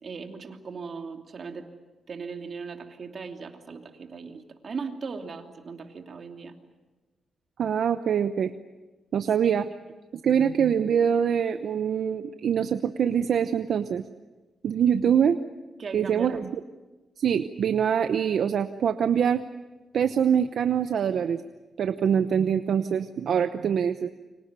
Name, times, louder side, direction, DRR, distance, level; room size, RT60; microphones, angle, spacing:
voice 1, 0.0-1.7 2.1-6.6 9.4-9.6 15.8-16.5, right 5 dB, 50° right, 4 dB, 2.9 m, -38 dB
voice 2, 7.6-8.5 9.1-9.7 10.2-14.0 14.6-15.4 15.9-16.4 17.2-19.4 19.9-21.4 21.8-24.1, right 8 dB, 70° right, 9 dB, 0.9 m, -24 dB
29.5 x 25.0 x 6.9 m, 1.2 s
cardioid pair, 95°, 0 cm